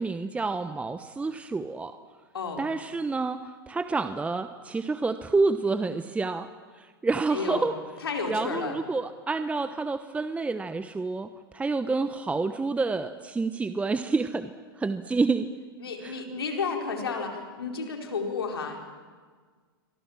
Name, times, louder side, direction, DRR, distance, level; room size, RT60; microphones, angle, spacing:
voice 1, 0.0-2.0 2.6-6.5 6.8-7.7 8.3-14.5 14.8-15.5 16.0-16.2, right 3 dB, 10° right, 10 dB, 1.0 m, -28 dB
voice 2, 2.3-2.7 7.3-7.7 8.0-8.8 15.8-18.8, left 5 dB, 90° left, 2 dB, 4.8 m, -32 dB
30.0 x 24.0 x 7.5 m, 1.5 s
hypercardioid pair, 110°, 12 cm